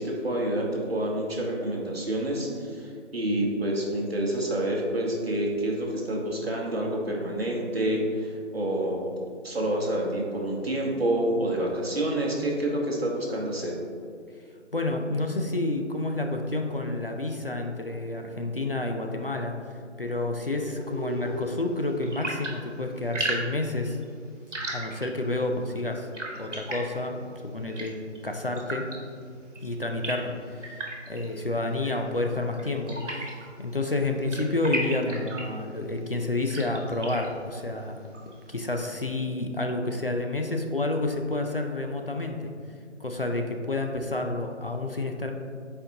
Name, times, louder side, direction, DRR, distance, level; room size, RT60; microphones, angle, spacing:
voice 1, 0.0-13.7, right 1 dB, 55° right, -2 dB, 1.3 m, -28 dB
voice 2, 14.7-24.0 24.7-26.1 26.4-28.0 28.2-28.9 29.6-38.0 38.5-42.5 43.0-45.3, left 2 dB, 50° left, 3 dB, 0.5 m, -29 dB
sound 1, 20.6-38.8, right 1 dB, 70° right, 1.5 m, -38 dB
8.8 x 4.3 x 2.7 m, 2.2 s
figure-of-eight pair, 180°, 37 cm